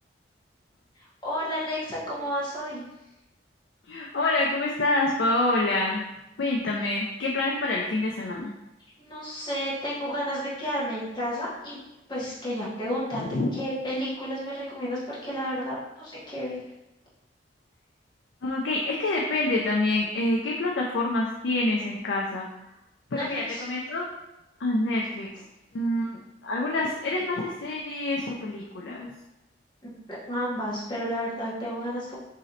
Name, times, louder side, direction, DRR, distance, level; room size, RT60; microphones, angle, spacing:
voice 1, 1.2-2.8 9.0-11.8 12.1-13.2 13.5-16.6 23.1-23.7 29.8-29.9 30.3-32.2, equal, 25° left, -8 dB, 1.3 m, -31 dB
voice 2, 3.9-6.0 6.4-8.5 13.2-13.6 18.4-22.5 23.1-24.0 24.6-25.3 25.7-29.1, left 2 dB, 80° left, -3 dB, 0.5 m, -27 dB
3.1 x 2.8 x 3.7 m, 0.95 s
head